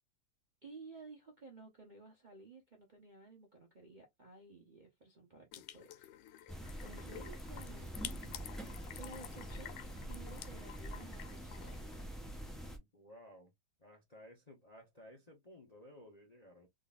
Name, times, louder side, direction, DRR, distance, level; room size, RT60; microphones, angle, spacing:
voice 1, 0.6-8.5 8.9-9.7 10.1-12.0, right 4 dB, 40° right, 0.7 m, -55 dB
sound 1, 5.5-12.1, left 12 dB, 90° left, 1.3 m, -51 dB
sound 2, 6.5-12.8, right 1 dB, ahead, 0.4 m, -45 dB
voice 2, 12.8-13.5 13.8-16.7, left 1 dB, 30° left, 0.8 m, -57 dB
3.8 x 3.3 x 2.4 m
omnidirectional pair, 1.9 m